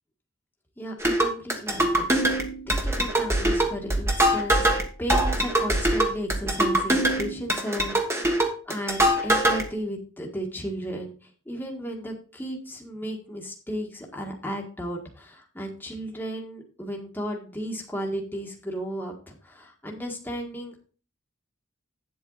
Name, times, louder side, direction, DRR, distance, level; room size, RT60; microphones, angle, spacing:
voice 1, 0.8-2.1 2.7-4.7 5.0-20.8, equal, 10° left, -1 dB, 1.7 m, -34 dB
sound 1, 1.0-9.6, right 1 dB, 15° right, 1.5 m, -23 dB
9.6 x 7.7 x 4.0 m, 0.38 s
head